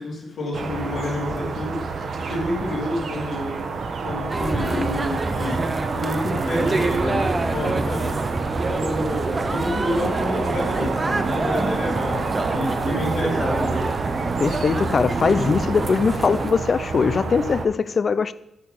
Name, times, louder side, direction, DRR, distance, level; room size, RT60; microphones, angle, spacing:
voice 1, 0.0-3.6 4.0-5.6 5.9-8.1 8.7-13.9, left 1 dB, 65° left, -6 dB, 3.5 m, -29 dB
sound 1, 0.5-17.7, right 4 dB, 55° right, 1.0 m, -29 dB
sound 2, 4.3-16.5, right 2 dB, 25° right, 0.6 m, -26 dB
voice 2, 14.4-18.3, left 5 dB, 40° left, 16 dB, 0.4 m, -21 dB
8.8 x 5.7 x 5.3 m, 0.90 s
wide cardioid pair, 150°, 0 cm